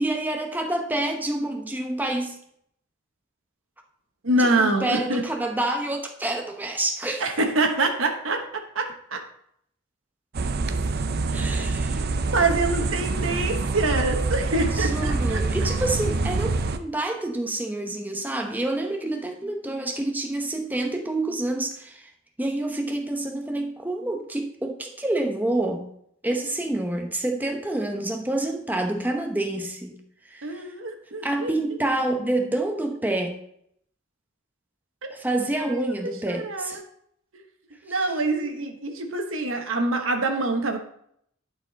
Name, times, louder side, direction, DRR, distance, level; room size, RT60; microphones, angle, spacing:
voice 1, 0.0-2.4 4.4-7.2 11.3-12.1 14.7-22.1 22.4-25.9 26.2-30.0 30.3-30.6 31.2-33.4 35.1-36.8, right 1 dB, 10° right, 2 dB, 0.9 m, -28 dB
voice 2, 4.2-5.2 7.2-9.2 11.3-11.6 12.3-15.4 30.4-31.5 35.0-35.1 35.6-36.8 37.8-40.8, right 2 dB, 85° right, 4 dB, 1.2 m, -25 dB
sound 1, 10.3-16.8, right 3 dB, 55° right, 0.5 m, -26 dB
10.5 x 4.6 x 4.1 m, 0.69 s
head